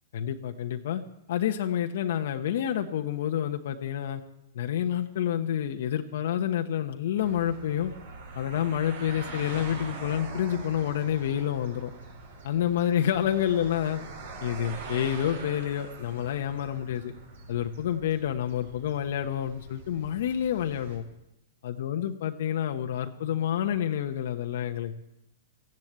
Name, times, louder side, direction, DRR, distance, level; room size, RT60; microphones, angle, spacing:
voice 1, 0.1-1.0 1.3-4.2 4.5-7.9 8.3-11.9 12.4-14.0 14.4-17.1 17.5-21.0 21.6-24.9, left 10 dB, 65° left, 5 dB, 1.1 m, -28 dB
sound 1, 7.2-21.0, right 3 dB, 75° right, 6.0 m, -43 dB
15.0 x 11.0 x 8.2 m, 0.88 s
hypercardioid pair, 150°, 0 cm